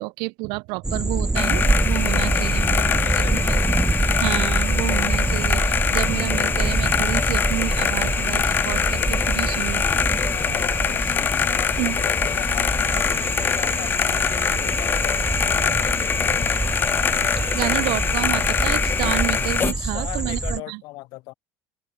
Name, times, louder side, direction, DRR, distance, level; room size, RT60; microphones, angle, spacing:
voice 1, 0.0-2.8 3.3-3.6 4.2-9.8 11.8-12.0 17.5-20.8, right 28 dB, 65° right, 1.4 m, -29 dB
sound 1, 0.8-20.6, right 2 dB, 10° right, 2.1 m, -25 dB
sound 2, 1.4-19.7, left 7 dB, 25° left, 1.2 m, -23 dB
voice 2, 2.1-3.4 10.3-16.4 19.7-21.3, left 20 dB, 55° left, 7.3 m, -39 dB
open air
cardioid pair, 165°, 8 cm